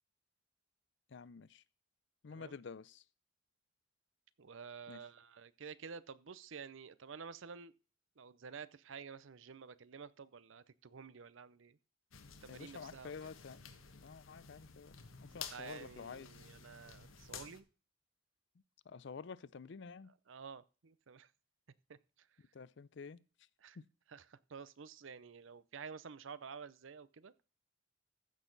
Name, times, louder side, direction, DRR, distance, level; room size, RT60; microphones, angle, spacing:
voice 1, 1.1-1.6 2.2-3.0 4.9-5.0 12.5-13.6 13.9-15.0 15.3-16.4 18.9-20.1 22.5-23.2, left 5 dB, 60° left, 0.4 m, -49 dB
voice 2, 4.4-7.7 8.2-11.8 12.4-13.1 15.5-17.7 20.0-21.3 21.9-22.3 23.6-23.8 24.1-27.3, right 6 dB, 70° right, 0.6 m, -51 dB
sound 1, 12.1-17.6, left 7 dB, 85° left, 1.3 m, -52 dB
14.5 x 6.4 x 4.0 m
head